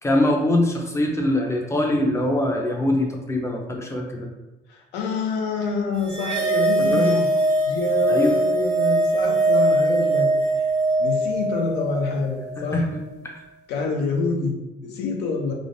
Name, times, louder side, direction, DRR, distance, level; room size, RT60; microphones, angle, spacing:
voice 1, 0.0-4.3 6.8-7.1 8.1-8.3 12.7-13.4, left 1 dB, 15° left, 1 dB, 0.5 m, -23 dB
voice 2, 4.7-7.3 7.6-10.7 11.0-12.9 13.7-15.5, left 4 dB, 85° left, 1 dB, 0.6 m, -27 dB
sound 1, 6.1-12.6, right 2 dB, 85° right, 0.8 m, -21 dB
3.2 x 2.0 x 2.5 m, 1.0 s
cardioid pair, 110°, 17 cm